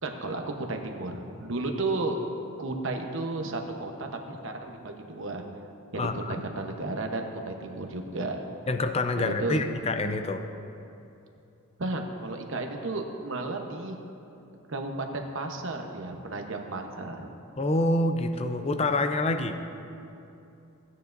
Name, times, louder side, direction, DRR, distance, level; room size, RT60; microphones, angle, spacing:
voice 1, 0.0-2.2 2.6-5.4 5.9-8.4 9.1-9.6 11.8-14.0 14.7-17.3, right 2 dB, 60° right, 3 dB, 1.0 m, -33 dB
voice 2, 5.9-6.4 8.7-10.4 17.6-19.6, left 2 dB, 30° left, 7 dB, 0.5 m, -27 dB
16.5 x 9.5 x 2.6 m, 2.8 s
head